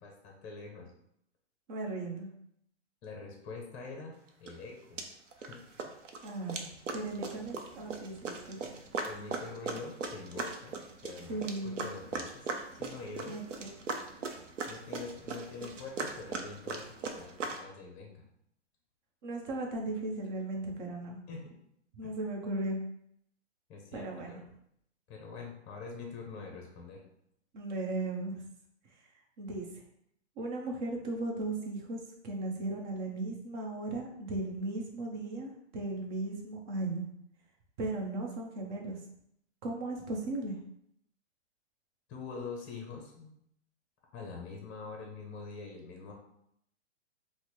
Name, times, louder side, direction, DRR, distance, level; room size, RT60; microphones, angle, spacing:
voice 1, 0.0-0.9 3.0-4.1 4.4-5.0 5.4-5.6 9.0-10.8 11.0-12.4 12.8-13.4 14.7-18.2 21.3-21.5 22.0-22.2 23.7-24.5 25.1-27.0 42.1-43.3 44.1-46.1, left 4 dB, 25° left, 0 dB, 0.6 m, -44 dB
voice 2, 1.7-2.3 6.2-6.7 6.9-8.7 11.3-11.8 13.3-13.7 19.2-21.2 22.0-22.8 23.9-24.4 27.5-28.4 29.4-29.7 30.4-37.1 37.8-39.0 39.6-40.6, right 2 dB, 40° right, 1 dB, 0.9 m, -36 dB
sound 1, 4.5-4.6 5.0-5.5 5.8-17.6, right 4 dB, 90° right, 0.6 m, -39 dB
4.0 x 2.1 x 3.1 m, 0.73 s
hypercardioid pair, 130°, 36 cm